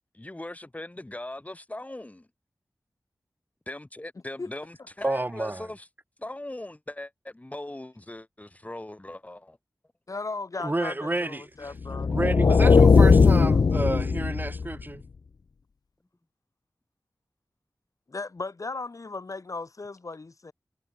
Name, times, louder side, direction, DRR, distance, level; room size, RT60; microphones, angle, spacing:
voice 1, 0.1-2.3 3.7-5.9 6.2-9.6, left 1 dB, 20° left, 4.5 m, -40 dB
voice 2, 5.0-5.7 10.6-15.0, right 2 dB, 30° right, 7.7 m, -30 dB
voice 3, 10.1-12.1 18.1-20.5, left 3 dB, 55° left, 5.1 m, -36 dB
sound 1, 11.8-14.8, left 5 dB, 80° left, 1.2 m, -18 dB
wide cardioid pair, 75°, 7 cm